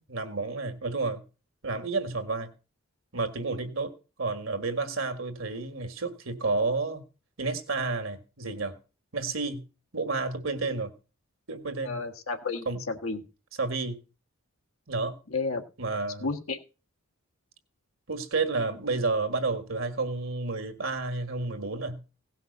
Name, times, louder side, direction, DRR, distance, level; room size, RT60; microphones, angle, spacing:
voice 1, 0.1-1.2 1.6-2.5 3.1-3.9 4.2-7.0 7.4-8.8 9.1-9.6 9.9-10.9 11.5-12.0 12.6-12.8 13.6-14.0 14.9-15.1 15.8-16.3 18.1-22.0, right 3 dB, 70° right, 1.7 m, -30 dB
voice 2, 11.8-13.2 15.3-15.6 16.2-16.6, left 4 dB, 90° left, 1.5 m, -32 dB
17.0 x 5.9 x 5.4 m
head